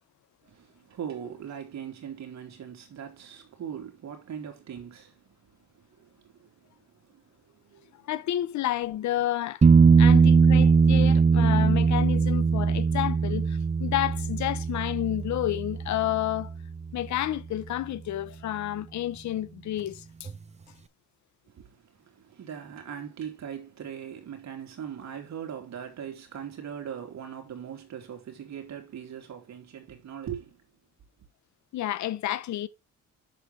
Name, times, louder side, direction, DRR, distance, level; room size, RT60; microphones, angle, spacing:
voice 1, 0.4-8.1 9.9-10.2 21.5-30.6, right 8 dB, 65° right, 2.9 m, -41 dB
voice 2, 8.0-9.6 10.0-16.5 16.9-20.3 31.7-32.7, left 13 dB, 70° left, 0.9 m, -30 dB
sound 1, 9.6-17.2 20.3-20.4, right 5 dB, 20° right, 0.7 m, -21 dB
8.1 x 6.8 x 3.3 m
cardioid pair, 90°, 30 cm